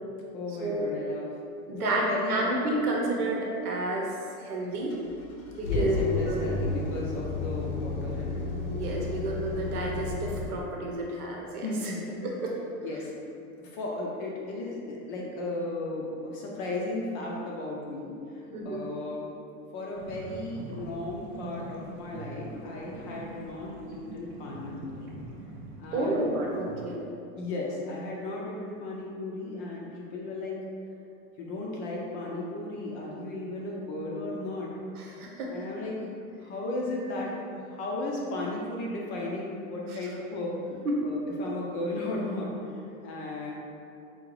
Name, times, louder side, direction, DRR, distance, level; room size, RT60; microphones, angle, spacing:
voice 1, 0.3-1.3 1.8-2.5 5.6-8.4 11.6-12.1 12.8-13.1 13.6-19.3 19.7-25.2 25.8-26.3 27.3-30.6 31.4-34.7 35.5-36.1 36.4-37.3 37.7-40.6 41.0-43.5, left 2 dB, 30° left, -3 dB, 0.4 m, -35 dB
voice 2, 1.7-4.1 4.4-5.0 5.5-6.4 8.7-11.9 12.2-12.5 18.5-18.8 25.9-27.0 35.0-35.5 40.8-41.0, right 1 dB, 90° right, -1 dB, 0.9 m, -30 dB
sound 1, 4.9-10.5, left 3 dB, 85° left, 0.8 m, -32 dB
sound 2, 19.9-26.9, right 2 dB, 30° right, 0.5 m, -43 dB
3.8 x 2.8 x 3.1 m, 2.6 s
supercardioid pair, 130°, 44 cm